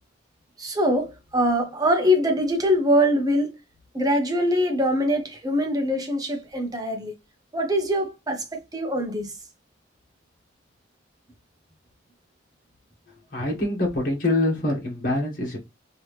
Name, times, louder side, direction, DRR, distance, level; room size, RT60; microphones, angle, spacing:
voice 1, 0.6-3.5 3.9-7.1 7.5-9.3, equal, 20° right, 0.9 m, -23 dB
voice 2, 13.3-15.6, left 2 dB, 45° left, 1.4 m, -25 dB
3.7 x 3.0 x 3.1 m
head